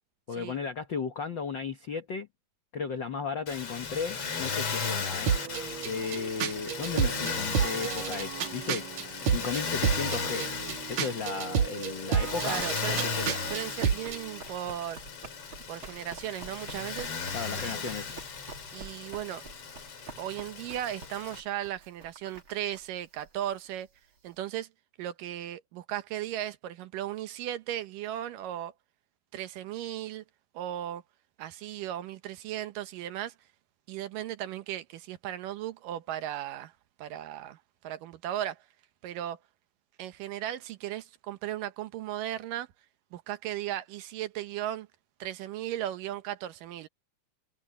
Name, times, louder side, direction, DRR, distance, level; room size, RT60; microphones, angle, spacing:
voice 1, 0.3-2.3 2.7-5.3 5.8-8.8 9.2-10.4 10.9-12.6 12.9-13.4 17.3-18.1, left 5 dB, 75° left, 1.0 m, -35 dB
Motor vehicle (road), 3.5-21.4, left 5 dB, 40° left, 3.3 m, -36 dB
sound 1, 5.3-14.2, right 7 dB, 60° right, 2.5 m, -31 dB
Run, 12.1-24.3, right 4 dB, 35° right, 3.3 m, -49 dB
voice 2, 12.4-13.0 13.5-15.0 15.7-17.2 17.5-17.9 18.7-19.4 20.2-23.9 24.2-24.7 25.0-28.7 29.3-30.2 30.5-31.0 31.4-33.3 33.9-36.7 37.0-38.6 39.0-39.4 40.0-42.7 43.1-44.9 45.2-46.9, right 12 dB, 75° right, 2.5 m, -36 dB
omnidirectional pair, 4.2 m